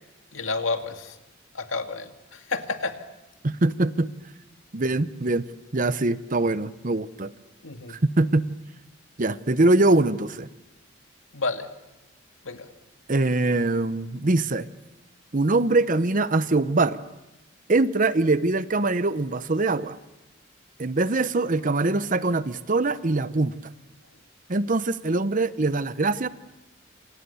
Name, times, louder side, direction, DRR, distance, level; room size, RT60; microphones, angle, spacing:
voice 1, 0.3-1.2 1.5-3.0 7.6-8.0 11.3-11.7 12.4-12.7, left 3 dB, 90° left, 6 dB, 2.2 m, -30 dB
voice 2, 3.4-4.1 4.7-5.4 5.7-7.3 7.9-8.4 9.2-10.5 13.1-14.7 15.3-17.0 17.7-20.0 20.8-23.5 24.5-26.3, right 2 dB, 40° right, 14 dB, 0.8 m, -23 dB
28.0 x 28.0 x 7.0 m, 1.0 s
head